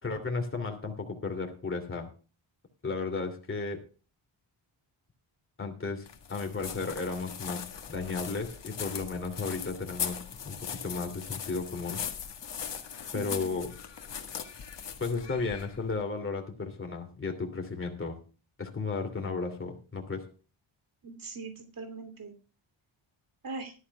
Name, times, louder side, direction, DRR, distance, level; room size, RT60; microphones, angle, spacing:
voice 1, 0.0-2.1 2.8-3.8 5.6-12.0 13.1-13.7 15.0-18.2 18.6-20.3, left 4 dB, 25° left, 3 dB, 2.8 m, -34 dB
sound 1, 6.1-16.0, left 7 dB, 60° left, 1.8 m, -40 dB
voice 2, 13.1-13.6 21.0-22.3 23.4-23.7, right 3 dB, 40° right, 6 dB, 3.0 m, -41 dB
19.5 x 12.5 x 2.3 m, 0.36 s
wide cardioid pair, 150°, 49 cm